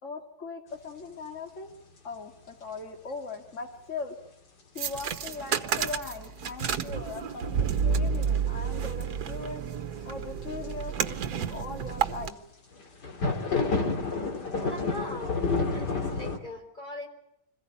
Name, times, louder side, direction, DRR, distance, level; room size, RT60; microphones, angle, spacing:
voice 1, 0.0-1.7 2.0-4.2 4.7-7.6 7.8-9.6 10.0-12.4, left 4 dB, 45° left, 3 dB, 2.7 m, -39 dB
sound 1, 4.8-12.3, right 7 dB, 70° right, 1.6 m, -30 dB
sound 2, 5.0-5.1 7.7-7.8 10.4-10.7 12.0-12.1 12.7-16.4, left 4 dB, 85° left, 3.1 m, -29 dB
voice 2, 14.5-15.4 15.7-17.1, left 1 dB, 25° left, 3 dB, 4.5 m, -40 dB
26.0 x 15.5 x 9.8 m, 0.82 s
omnidirectional pair, 1.8 m